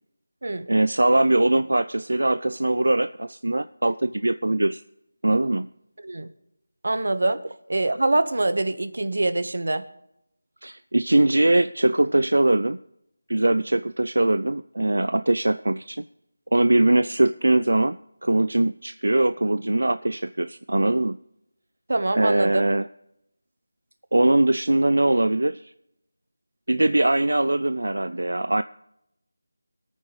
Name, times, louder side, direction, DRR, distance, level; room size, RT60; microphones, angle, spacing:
voice 1, 0.7-4.8 5.2-5.7 10.6-12.8 13.3-16.0 16.5-21.2 22.1-22.9 24.1-25.7 26.7-28.6, right 2 dB, 90° right, 13 dB, 0.4 m, -21 dB
voice 2, 6.8-7.4 7.7-9.8 21.9-22.6, right 2 dB, 65° right, 12 dB, 1.2 m, -24 dB
24.0 x 9.1 x 3.2 m, 0.82 s
figure-of-eight pair, 175°, 0 cm